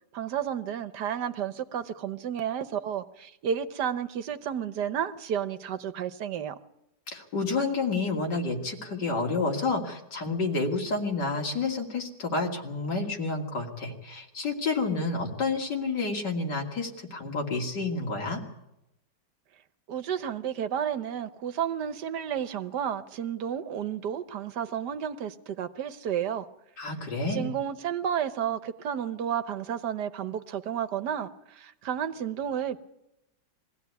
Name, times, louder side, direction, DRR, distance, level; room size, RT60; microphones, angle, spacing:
voice 1, 0.1-6.6 19.9-26.4 27.3-32.8, right 9 dB, 75° right, 1.6 m, -31 dB
voice 2, 7.1-18.4 26.8-27.5, left 3 dB, 80° left, 3.2 m, -29 dB
21.5 x 16.0 x 9.5 m
omnidirectional pair, 1.8 m